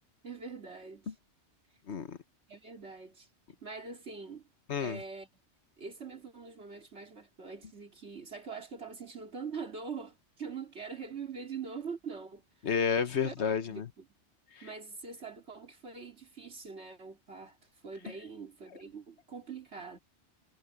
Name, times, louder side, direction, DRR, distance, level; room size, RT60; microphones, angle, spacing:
voice 1, 0.2-1.1 2.5-3.3 3.6-4.4 4.8-5.3 5.8-12.4 13.2-14.1 14.6-17.6 17.8-20.0, right 5 dB, 65° right, 3.1 m, -43 dB
voice 2, 1.9-2.2 4.7-5.0 12.6-13.9, left 6 dB, 70° left, 1.4 m, -30 dB
omnidirectional pair, 1.2 m